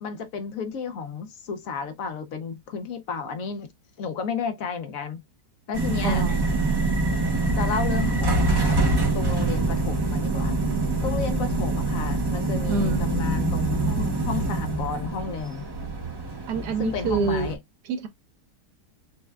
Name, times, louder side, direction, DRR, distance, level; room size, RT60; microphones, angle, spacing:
voice 1, 0.0-3.7 4.0-5.2 5.7-6.2 7.6-8.8 9.1-10.6 11.0-15.7 16.8-17.6, left 6 dB, 60° left, 1.0 m, -32 dB
sound 1, 5.7-17.5, right 2 dB, 40° right, 0.3 m, -25 dB
voice 2, 6.0-6.4 12.7-13.1 16.5-17.5 17.8-18.1, right 5 dB, 70° right, 1.4 m, -26 dB
sound 2, 9.9-15.4, left 2 dB, 25° left, 0.6 m, -35 dB
6.3 x 2.2 x 2.2 m
omnidirectional pair, 1.8 m